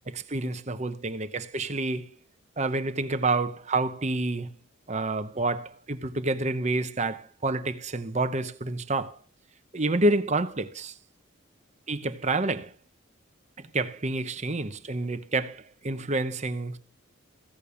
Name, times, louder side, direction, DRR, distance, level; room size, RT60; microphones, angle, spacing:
voice 1, 0.1-2.1 2.6-4.5 4.9-9.2 9.7-10.9 11.9-12.7 13.6-16.8, right 2 dB, 35° right, 0.8 m, -28 dB
16.0 x 6.8 x 6.9 m
head